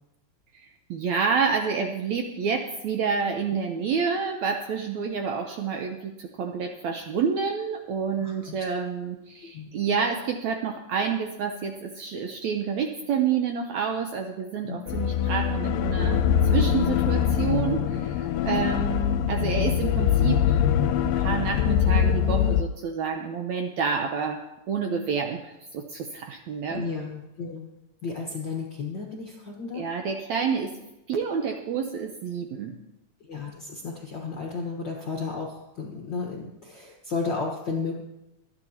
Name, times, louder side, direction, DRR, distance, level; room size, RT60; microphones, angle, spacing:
voice 1, 0.9-16.2 16.5-20.6 21.0-24.4 24.7-26.9 29.7-30.7 31.1-32.8, right 6 dB, 75° right, 4 dB, 1.7 m, -28 dB
voice 2, 8.2-8.7 9.4-9.7 14.6-15.0 18.4-18.8 26.7-27.7 28.0-29.8 33.2-38.0, left 4 dB, 60° left, -1 dB, 1.2 m, -33 dB
sound 1, 14.9-22.6, left 9 dB, 80° left, 2.2 m, -23 dB
25.5 x 9.6 x 2.9 m, 0.90 s
omnidirectional pair, 4.1 m